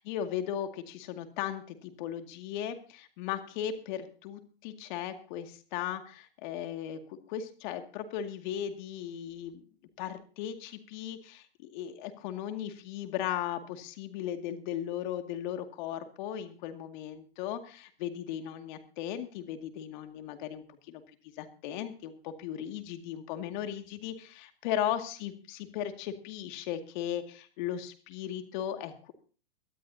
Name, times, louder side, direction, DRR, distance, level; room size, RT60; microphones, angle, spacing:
voice 1, 0.1-9.6 10.0-11.5 11.7-21.0 21.4-29.1, left 10 dB, 50° left, 6 dB, 2.2 m, -37 dB
23.0 x 12.5 x 2.8 m, 0.39 s
hypercardioid pair, 120°, 30 cm